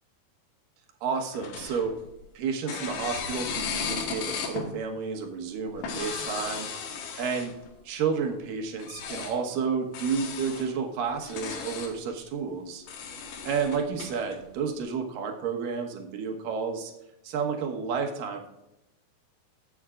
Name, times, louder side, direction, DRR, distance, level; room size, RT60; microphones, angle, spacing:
voice 1, 1.0-1.9 2.3-6.7 7.2-7.5 7.8-12.8 13.4-16.9 17.2-18.5, right 5 dB, 65° right, 3 dB, 2.8 m, -31 dB
sound 1, 1.3-2.2 2.7-4.7 5.7-7.7 8.8-9.3 9.9-10.7 11.1-11.9 12.9-14.4, left 5 dB, 80° left, 3.3 m, -35 dB
20.0 x 7.9 x 2.5 m, 0.92 s
omnidirectional pair, 4.5 m